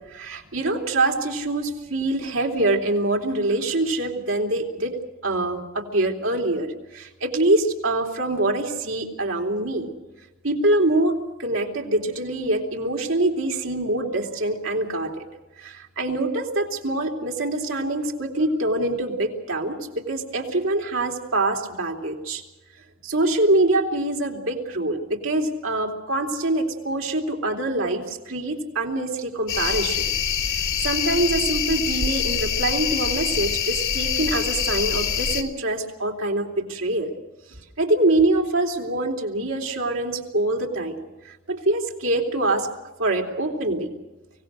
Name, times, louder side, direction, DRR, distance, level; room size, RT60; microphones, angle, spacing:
voice 1, 0.1-9.9 10.4-15.3 15.6-22.4 23.0-30.1 30.8-37.2 37.8-42.7 43.0-43.9, right 2 dB, 85° right, 1 dB, 3.5 m, -24 dB
sound 1, 29.5-35.4, left 8 dB, 85° left, 2.9 m, -25 dB
24.5 x 18.0 x 6.4 m, 1.1 s
head